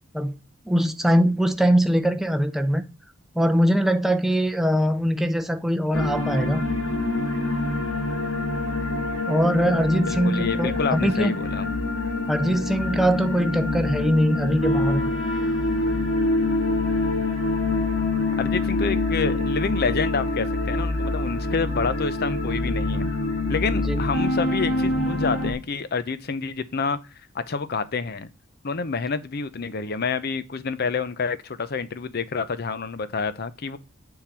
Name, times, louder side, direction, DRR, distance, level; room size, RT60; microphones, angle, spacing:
voice 1, 0.7-2.8 3.4-6.6 9.3-11.3 12.3-15.0 23.9-24.0, equal, ahead, 0.6 m, -22 dB
sound 1, 5.9-25.5, left 2 dB, 70° left, 1.9 m, -25 dB
voice 2, 10.1-11.7 18.4-23.1 23.5-27.0 27.3-28.3 28.6-33.8, left 5 dB, 50° left, 0.6 m, -28 dB
7.1 x 3.8 x 5.9 m
head